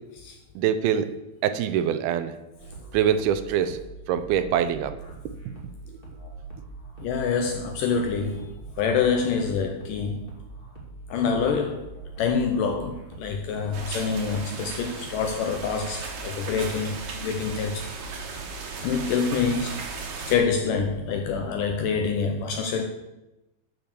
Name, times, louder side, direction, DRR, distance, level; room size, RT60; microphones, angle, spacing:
voice 1, 0.6-1.1 1.4-2.3 2.9-3.8 4.1-5.0, right 9 dB, 80° right, 2.4 m, -24 dB
sound 1, 2.6-21.4, right 3 dB, 15° left, 2.4 m, -43 dB
voice 2, 7.0-8.5 8.8-10.3 11.1-11.9 12.2-17.9 18.8-19.8 20.3-22.8, left 5 dB, 75° left, 2.0 m, -26 dB
sound 2, 13.7-20.4, right 4 dB, 55° right, 2.6 m, -37 dB
12.0 x 6.0 x 6.8 m
omnidirectional pair, 4.6 m